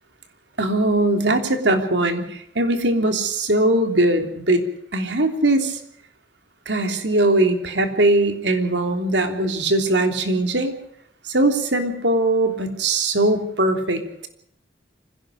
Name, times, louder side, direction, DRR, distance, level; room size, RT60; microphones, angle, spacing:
voice 1, 0.6-4.6 4.9-5.8 6.6-10.7 11.2-14.3, right 2 dB, 85° right, 6 dB, 3.3 m, -20 dB
25.0 x 17.0 x 6.4 m, 0.69 s
head